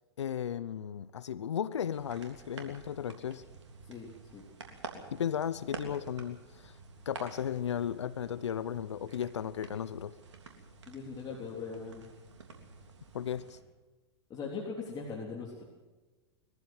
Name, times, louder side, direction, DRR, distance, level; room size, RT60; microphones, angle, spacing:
voice 1, 0.2-3.4 5.1-6.8 7.1-10.1 13.1-13.6, left 9 dB, 85° left, 16 dB, 0.8 m, -35 dB
sound 1, 1.9-13.6, right 4 dB, 90° right, 3.4 m, -49 dB
voice 2, 3.8-4.4 10.9-12.1 14.3-15.6, left 5 dB, 30° left, -2 dB, 3.6 m, -40 dB
22.5 x 14.5 x 7.9 m, 1.2 s
hypercardioid pair, 110°, 15 cm